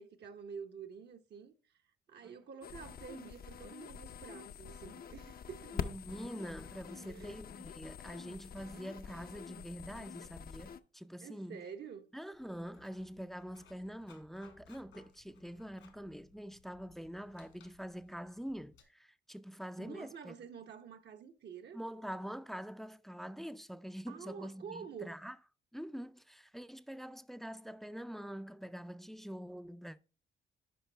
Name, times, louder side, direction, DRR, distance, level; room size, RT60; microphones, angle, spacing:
voice 1, 0.0-1.5 2.1-5.8 7.1-7.3 11.2-12.1 19.8-21.8 24.1-25.2, right 6 dB, 60° right, 0.9 m, -48 dB
sound 1, 2.6-10.8, left 7 dB, 50° left, 0.6 m, -46 dB
voice 2, 5.7-11.7 12.1-20.3 21.7-25.4 25.7-30.0, equal, ahead, 0.4 m, -45 dB
Writing, 12.3-18.8, left 6 dB, 80° left, 2.5 m, -64 dB
10.0 x 5.3 x 3.3 m
cardioid pair, 90°, 20 cm